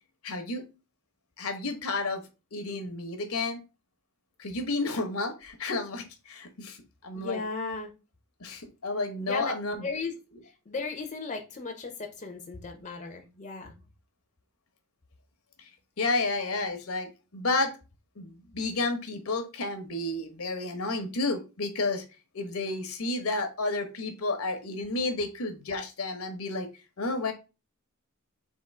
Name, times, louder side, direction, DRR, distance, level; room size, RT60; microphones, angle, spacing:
voice 1, 0.2-0.6 1.4-2.2 2.5-3.6 4.4-6.8 7.0-7.4 8.4-9.9 16.0-17.7 18.2-22.0 22.3-26.7 27.0-27.3, left 2 dB, 70° left, 6 dB, 1.0 m, -31 dB
voice 2, 7.1-7.9 9.2-9.5 9.8-10.1 10.7-13.7, left 4 dB, 35° left, 3 dB, 0.7 m, -35 dB
3.7 x 2.9 x 4.2 m, 0.29 s
head